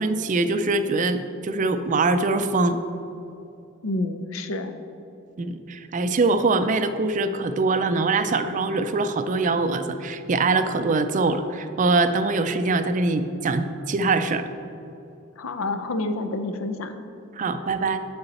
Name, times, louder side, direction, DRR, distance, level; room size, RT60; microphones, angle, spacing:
voice 1, 0.0-2.8 5.4-14.4 17.4-18.0, right 3 dB, 40° right, 10 dB, 0.4 m, -23 dB
voice 2, 3.8-4.7 15.4-17.0, left 2 dB, 75° left, 8 dB, 0.6 m, -28 dB
8.0 x 6.8 x 4.1 m, 2.8 s
head